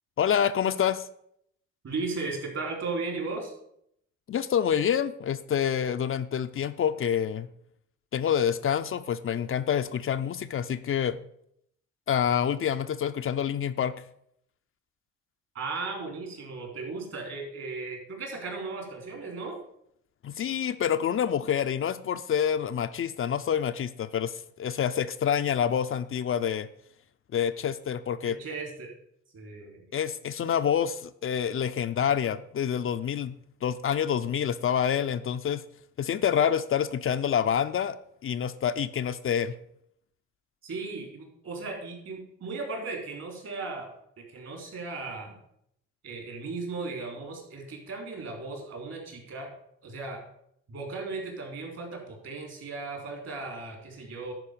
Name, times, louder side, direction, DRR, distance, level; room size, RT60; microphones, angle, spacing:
voice 1, 0.2-1.1 4.3-7.5 8.1-11.2 12.1-13.9 20.2-26.7 27.3-28.4 29.9-33.4 33.6-35.6 36.0-38.0 38.2-39.5, left 8 dB, 45° left, 10 dB, 0.5 m, -27 dB
voice 2, 1.8-3.5 15.5-19.6 28.2-28.9 29.3-29.9 40.6-43.9 44.2-45.4 46.0-49.5 49.8-50.2 50.7-54.3, right 3 dB, 55° right, 2 dB, 3.7 m, -36 dB
11.0 x 4.6 x 6.7 m, 0.72 s
cardioid pair, 90°, 30 cm